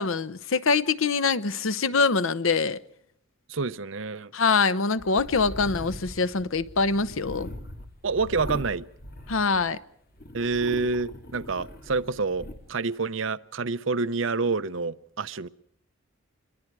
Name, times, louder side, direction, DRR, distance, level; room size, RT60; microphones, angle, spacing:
voice 1, 0.0-2.8 4.3-7.5 9.3-9.8, left 4 dB, 75° left, 0.9 m, -24 dB
voice 2, 3.5-4.3 8.0-8.9 10.3-15.5, right 4 dB, 65° right, 0.8 m, -28 dB
sound 1, 5.0-9.8 10.2-12.6, left 1 dB, 45° left, 3.0 m, -41 dB
27.0 x 22.5 x 4.8 m
head